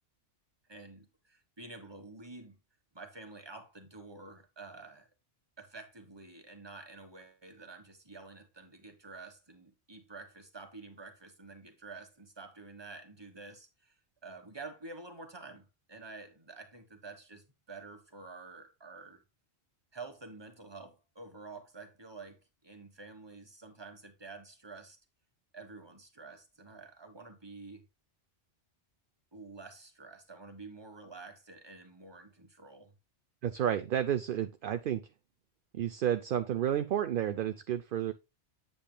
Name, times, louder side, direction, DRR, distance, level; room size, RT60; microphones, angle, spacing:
voice 1, 0.7-2.6 2.9-5.1 5.6-19.2 19.9-25.0 25.5-27.8 29.3-33.0, right 3 dB, 20° right, 1.4 m, -49 dB
voice 2, 33.4-35.0 35.7-38.1, right 10 dB, 60° right, 0.6 m, -31 dB
8.5 x 7.9 x 2.2 m
omnidirectional pair, 1.2 m